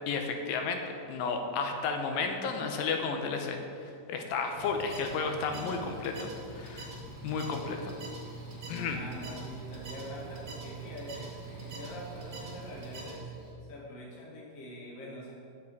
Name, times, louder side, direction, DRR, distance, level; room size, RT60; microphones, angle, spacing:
voice 1, 0.1-0.8 1.1-3.6 4.1-6.9 7.2-8.0 8.7-9.0, left 5 dB, 85° left, 4 dB, 2.5 m, -32 dB
sound 1, 4.5-13.1, right 3 dB, 50° right, 2.6 m, -45 dB
Mechanical fan, 5.0-13.5, right 3 dB, 60° left, 1.3 m, -49 dB
voice 2, 8.9-13.3 13.7-15.3, equal, 35° left, -4 dB, 1.3 m, -44 dB
9.4 x 7.5 x 4.7 m, 2.5 s
omnidirectional pair, 4.1 m